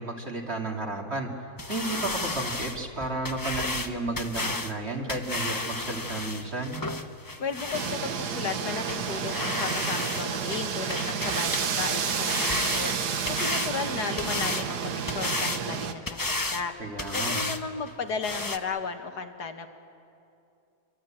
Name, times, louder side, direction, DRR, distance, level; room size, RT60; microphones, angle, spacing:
voice 1, 0.0-6.8 16.8-17.5, right 2 dB, 40° right, 1 dB, 2.9 m, -33 dB
sound 1, 1.6-8.0 8.5-8.6 8.9-9.0 9.3-10.3 10.5-11.7 12.0-13.7 14.2-14.7 15.1-15.6 16.1-16.7 17.0-17.6 17.9-18.0 18.2-18.6, left 2 dB, 20° left, 0.7 m, -32 dB
voice 2, 7.4-13.0 13.3-16.7 17.1-19.7, left 5 dB, 80° left, 6 dB, 2.1 m, -34 dB
sound 2, 7.7-15.9, right 7 dB, 90° right, 1.8 m, -30 dB
26.5 x 24.0 x 8.9 m, 2.6 s
omnidirectional pair, 1.7 m